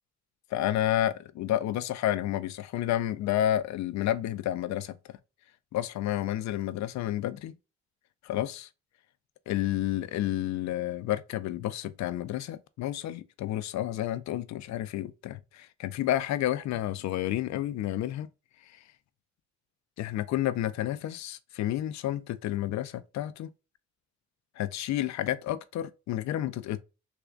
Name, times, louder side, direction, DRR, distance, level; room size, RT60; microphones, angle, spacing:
voice 1, 0.5-4.9 5.7-7.5 8.2-8.7 9.5-18.3 18.7-18.8 20.0-23.5 24.6-26.8, left 13 dB, 65° left, 0.4 m, -30 dB
3.4 x 2.2 x 3.7 m
cardioid pair, 90°, 30 cm